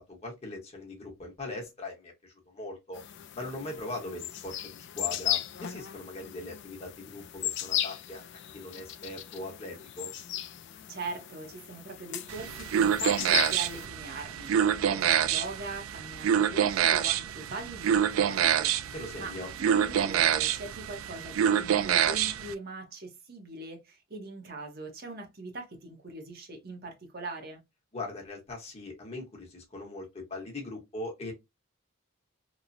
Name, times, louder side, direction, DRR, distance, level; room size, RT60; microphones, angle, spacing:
voice 1, 0.0-3.0 3.3-8.2 8.5-10.1 18.3-18.6 18.9-19.5 27.9-31.3, left 2 dB, 30° left, 0.9 m, -40 dB
sound 1, 2.9-13.9, left 11 dB, 55° left, 0.3 m, -36 dB
voice 2, 10.9-18.7 19.2-19.3 19.6-27.6, right 2 dB, 50° right, 0.7 m, -41 dB
sound 2, 12.3-22.5, right 9 dB, 75° right, 0.3 m, -27 dB
3.0 x 2.0 x 2.4 m
head